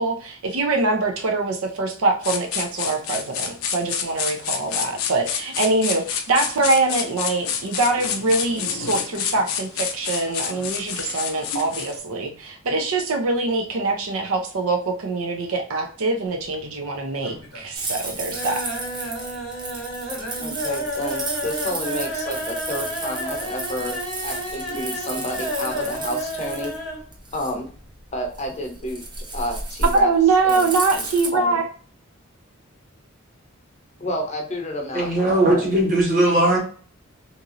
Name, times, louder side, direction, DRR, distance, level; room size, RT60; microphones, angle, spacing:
voice 1, 0.0-18.6 29.9-31.6, right 3 dB, 90° right, 3 dB, 0.6 m, -23 dB
sound 1, 2.2-12.0, left 7 dB, 85° left, 0.4 m, -29 dB
sound 2, 16.3-16.9 17.2-17.7 18.0-27.0 27.3-27.4 27.7-27.8, equal, 75° right, 1.3 m, -31 dB
sound 3, 17.7-31.3, right 2 dB, 20° right, 0.5 m, -33 dB
voice 2, 20.4-24.0 24.2-26.7 27.3-27.7 28.1-29.0 29.3-30.1 30.4-31.0 31.3-31.6 34.0-35.7, equal, 35° left, 2 dB, 0.6 m, -30 dB
voice 3, 34.9-36.6, right 1 dB, 40° right, -2 dB, 1.2 m, -18 dB
2.9 x 2.6 x 2.4 m, 0.43 s
head